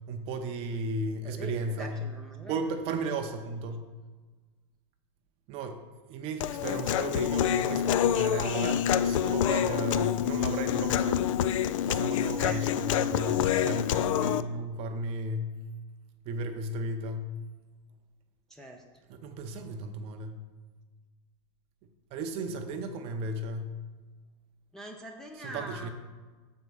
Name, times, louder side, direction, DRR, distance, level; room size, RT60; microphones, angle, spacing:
voice 1, 0.1-2.1 2.5-3.8 5.5-5.8 6.1-11.2 11.8-15.6 16.2-17.4 19.1-20.4 22.1-23.8 25.4-25.9, right 2 dB, 35° right, 6 dB, 0.7 m, -34 dB
voice 2, 1.2-3.0 12.1-12.6 18.5-18.8 24.7-25.9, right 1 dB, 5° left, 1 dB, 0.5 m, -43 dB
Human voice, 6.4-14.4, left 10 dB, 75° left, 0.4 m, -27 dB
7.1 x 4.6 x 5.4 m, 1.4 s
supercardioid pair, 150°, 17 cm